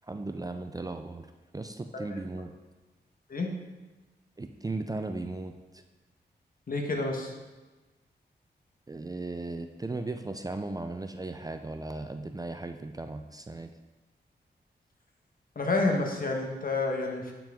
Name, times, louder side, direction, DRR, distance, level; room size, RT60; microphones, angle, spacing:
voice 1, 0.1-1.3 1.5-2.5 4.4-5.8 8.9-13.7, right 2 dB, 20° right, 7 dB, 0.5 m, -36 dB
voice 2, 6.7-7.3 15.5-17.3, left 3 dB, 50° left, 1 dB, 1.4 m, -29 dB
8.5 x 6.0 x 3.8 m, 1.2 s
cardioid pair, 55°, 18 cm